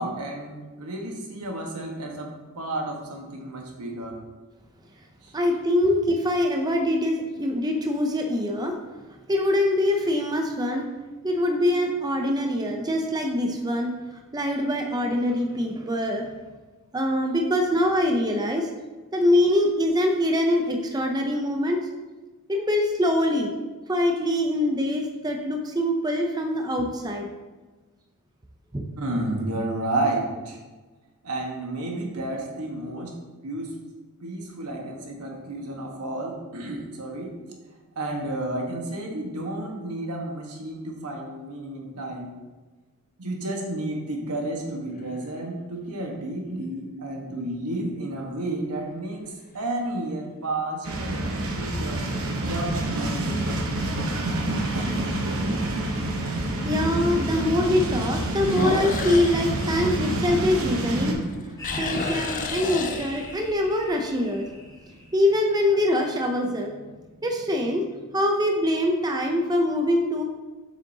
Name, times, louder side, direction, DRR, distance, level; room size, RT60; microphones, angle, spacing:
voice 1, 0.0-4.2 5.2-5.3 29.0-30.6 31.2-33.1 33.4-33.7 34.2-37.3 37.9-42.4 43.2-52.0 52.4-53.5 61.0-61.3, right 1 dB, 85° right, 0 dB, 1.3 m, -31 dB
voice 2, 5.3-8.8 9.3-10.9 11.2-13.9 14.3-16.3 16.9-18.7 19.1-21.8 22.5-23.5 23.9-27.3 28.7-28.9 56.2-61.5 61.8-64.5 65.1-66.8 67.2-67.9 68.1-70.2, left 1 dB, 20° right, 3 dB, 0.5 m, -24 dB
sound 1, 44.7-45.4 46.1-46.2 51.4-51.8 52.3-52.4 53.0-53.1 53.3-53.4 54.9-55.0 58.4-60.9 61.2-63.6, left 3 dB, 35° left, 0.5 m, -31 dB
sound 2, 50.8-61.1, right 1 dB, 65° right, 1.0 m, -27 dB
sound 3, 61.6-65.5, left 1 dB, 15° left, 1.6 m, -40 dB
7.5 x 6.4 x 2.8 m, 1.2 s
head